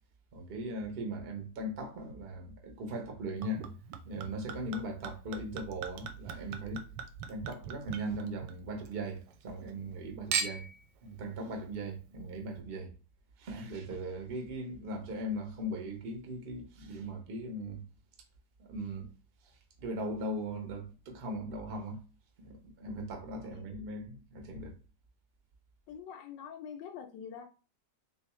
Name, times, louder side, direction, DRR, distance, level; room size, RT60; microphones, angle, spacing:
voice 1, 0.3-3.7 4.0-6.8 7.3-10.6 11.0-12.9 13.4-17.8 18.6-19.1 19.8-22.0 22.4-24.7, right 1 dB, 45° right, 0.8 m, -39 dB
Chink clink / Liquid, 3.4-8.9 9.3-10.0 10.3-10.8 11.6-11.7, right 6 dB, 75° right, 1.1 m, -40 dB
voice 2, 25.9-27.5, left 7 dB, 80° left, 1.2 m, -45 dB
3.4 x 3.1 x 3.0 m
omnidirectional pair, 1.9 m